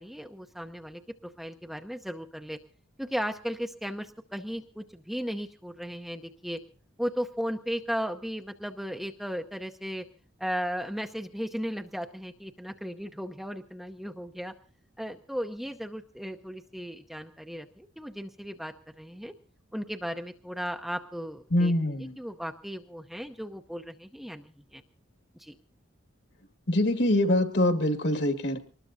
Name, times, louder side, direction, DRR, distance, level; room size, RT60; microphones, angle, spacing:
voice 1, 0.0-2.6 3.0-6.6 7.0-10.0 10.4-14.5 15.0-19.3 19.7-21.7 22.2-24.8 25.4-25.5, equal, ahead, 5 dB, 0.7 m, -36 dB
voice 2, 21.5-22.2 26.7-28.6, left 1 dB, 55° left, 8 dB, 1.9 m, -24 dB
24.5 x 20.0 x 2.7 m, 0.39 s
head